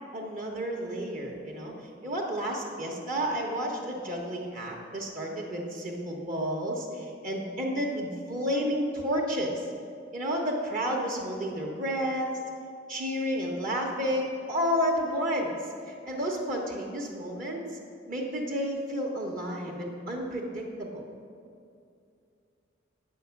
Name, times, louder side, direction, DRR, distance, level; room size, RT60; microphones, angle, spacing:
voice 1, 0.1-1.7 2.0-9.6 10.1-12.3 12.9-15.5 15.9-17.8 18.1-21.0, equal, 45° right, -1 dB, 1.0 m, -31 dB
8.7 x 5.6 x 7.0 m, 2.5 s
head